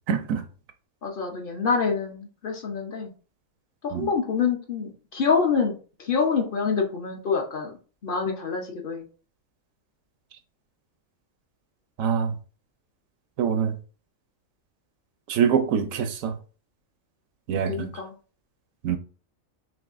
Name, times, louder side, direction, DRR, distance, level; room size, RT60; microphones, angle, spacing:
voice 1, 0.1-0.4 3.9-4.1 12.0-12.3 13.4-13.7 15.3-16.3 17.5-17.9 18.8-19.0, right 7 dB, 90° right, 1.1 m, -24 dB
voice 2, 1.0-3.1 3.9-5.8 6.1-7.7 8.0-9.0 17.6-18.1, left 5 dB, 50° left, 0.7 m, -26 dB
6.0 x 2.6 x 2.5 m
omnidirectional pair, 1.4 m